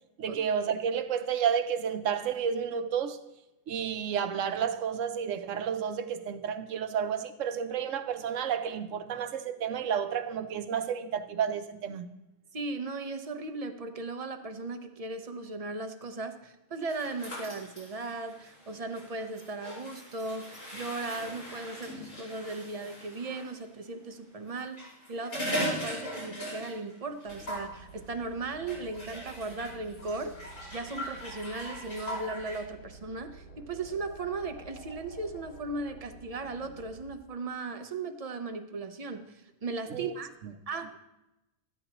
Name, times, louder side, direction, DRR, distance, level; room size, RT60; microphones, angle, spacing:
voice 1, 0.2-3.2 3.7-12.1 39.9-40.2 40.4-40.5, right 8 dB, 80° right, 1.0 m, -31 dB
voice 2, 12.5-40.3 40.7-41.0, right 3 dB, 35° right, 0.6 m, -37 dB
sound 1, 16.9-23.5 24.6-26.9 27.2-27.7 28.7-32.6, equal, 90° left, 5.0 m, -39 dB
sound 2, 27.3-37.2, right 2 dB, 50° left, 1.3 m, -51 dB
13.0 x 10.0 x 2.9 m
omnidirectional pair, 1.3 m